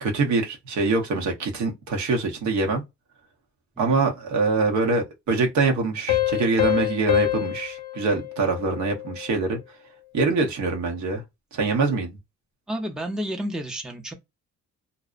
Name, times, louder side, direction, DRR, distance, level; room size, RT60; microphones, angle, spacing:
voice 1, 0.0-2.8 3.8-9.6 10.1-11.2 11.5-12.1, right 3 dB, 70° right, 0.8 m, -24 dB
Piano, 6.1-9.4, left 15 dB, 85° left, 0.5 m, -26 dB
voice 2, 12.7-14.1, equal, ahead, 0.5 m, -31 dB
2.5 x 2.0 x 2.4 m
cardioid pair, 90°, 30 cm